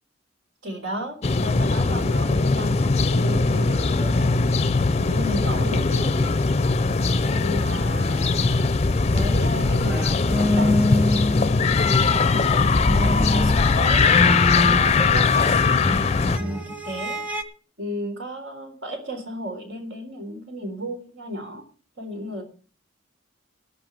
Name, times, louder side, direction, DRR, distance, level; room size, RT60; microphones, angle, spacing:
voice 1, 0.6-4.6 5.0-6.5 7.2-8.3 9.1-17.2 17.8-21.6 22.0-22.4, equal, 80° right, 5 dB, 3.7 m, -34 dB
sound 1, 1.2-16.4, left 4 dB, 35° left, 0.5 m, -20 dB
sound 2, 9.6-12.1 12.4-17.4, left 1 dB, 5° right, 1.0 m, -27 dB
12.0 x 5.6 x 9.0 m, 0.39 s
head